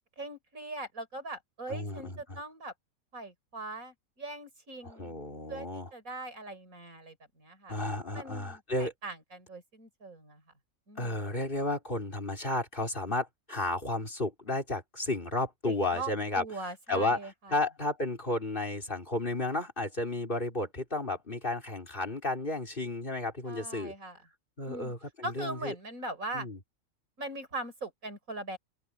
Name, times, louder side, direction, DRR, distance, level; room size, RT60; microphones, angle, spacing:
voice 1, 0.2-2.7 3.1-5.2 5.5-7.8 8.1-10.4 10.9-11.2 15.7-17.6 23.5-24.2 24.7-24.9 25.2-26.5 27.2-28.6, right 2 dB, 80° right, 5.6 m, -41 dB
voice 2, 1.7-2.4 4.8-5.9 7.7-8.9 11.0-16.4 16.9-17.2 17.5-23.9 24.6-25.7 26.3-26.6, left 2 dB, 40° left, 4.6 m, -33 dB
open air
omnidirectional pair, 1.4 m